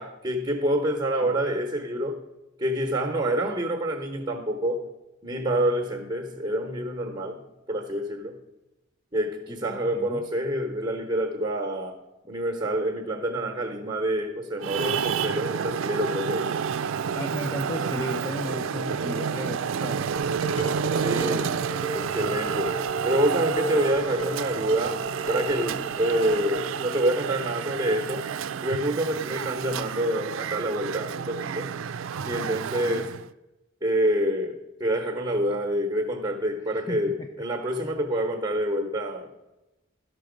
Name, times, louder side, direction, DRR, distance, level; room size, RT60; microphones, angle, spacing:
voice 1, 0.0-2.2 2.6-4.8 5.2-7.4 7.7-8.3 9.1-12.0 12.3-16.5 20.9-21.5 21.9-22.7 23.0-28.2 28.6-31.7 32.2-33.1 33.8-39.3, right 1 dB, 20° right, 2 dB, 1.0 m, -27 dB
voice 2, 9.5-10.2 17.1-20.0 29.7-29.9 32.8-33.1 36.7-37.3, left 1 dB, 15° left, 4 dB, 0.5 m, -35 dB
Traffic noise roadway noise, 14.6-33.3, right 7 dB, 80° right, 0.4 m, -30 dB
Dishes pots and pans, 20.2-26.8, right 1 dB, 60° left, 1.8 m, -35 dB
12.0 x 6.1 x 5.1 m, 1.0 s
head